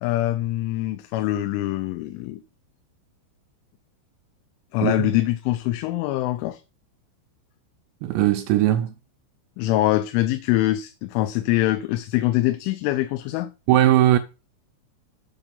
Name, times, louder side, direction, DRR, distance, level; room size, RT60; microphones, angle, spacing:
voice 1, 0.0-2.4 4.7-6.6 9.6-13.5, left 15 dB, 85° left, 3.2 m, -24 dB
voice 2, 4.8-5.1 8.0-8.9 13.7-14.2, right 13 dB, 80° right, 2.7 m, -19 dB
8.0 x 6.8 x 5.4 m
omnidirectional pair, 5.5 m